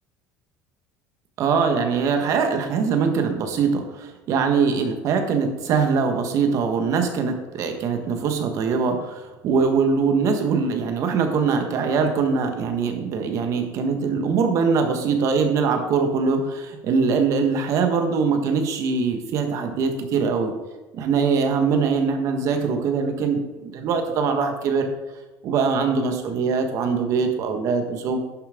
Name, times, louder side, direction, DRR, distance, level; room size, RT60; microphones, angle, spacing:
voice 1, 1.4-20.5 20.9-24.9 25.4-28.2, right 5 dB, 50° right, 6 dB, 1.4 m, -22 dB
11.0 x 7.2 x 3.7 m, 1.1 s
cardioid pair, 140°, 7 cm